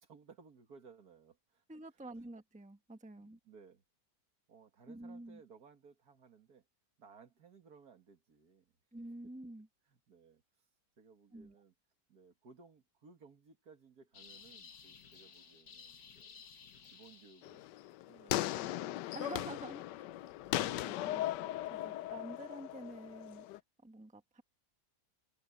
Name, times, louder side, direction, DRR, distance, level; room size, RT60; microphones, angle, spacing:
voice 1, 0.0-1.6 3.2-3.8 4.5-6.7 7.0-8.8 9.9-10.7 11.0-11.7 12.1-16.4 16.9-17.7 18.1-18.8, right 5 dB, 65° right, 2.2 m, -60 dB
voice 2, 1.7-3.4 4.9-5.4 8.9-9.7 11.3-11.6 19.1-19.8 20.5-21.5 21.8-23.5 23.8-24.4, right 2 dB, 5° right, 1.2 m, -48 dB
sound 1, 14.1-17.8, left 6 dB, 65° left, 1.9 m, -56 dB
sound 2, 17.4-23.6, left 14 dB, 90° left, 1.2 m, -38 dB
omnidirectional pair, 1.8 m